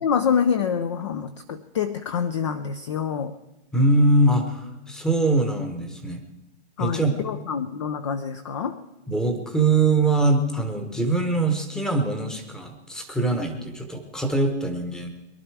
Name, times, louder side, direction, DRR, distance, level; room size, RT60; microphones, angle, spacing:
voice 1, 0.0-3.3 6.8-8.8, left 7 dB, 25° left, 11 dB, 0.4 m, -26 dB
voice 2, 3.7-6.2 6.8-7.1 9.1-15.1, right 2 dB, ahead, 6 dB, 1.0 m, -22 dB
23.0 x 11.0 x 4.7 m, 0.99 s
hypercardioid pair, 150°, 34 cm